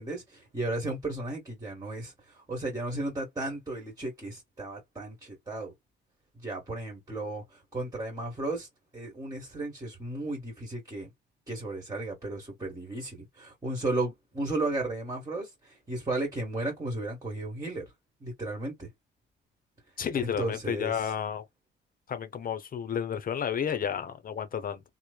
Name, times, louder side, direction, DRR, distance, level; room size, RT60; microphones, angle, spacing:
voice 1, 0.0-5.7 6.3-8.7 8.9-11.1 11.5-17.8 18.2-18.9 20.2-21.1, right 2 dB, 15° right, 1.5 m, -34 dB
voice 2, 20.0-21.4 22.1-24.8, left 8 dB, 45° left, 0.7 m, -31 dB
3.0 x 2.1 x 2.3 m
cardioid pair, 90°, 20 cm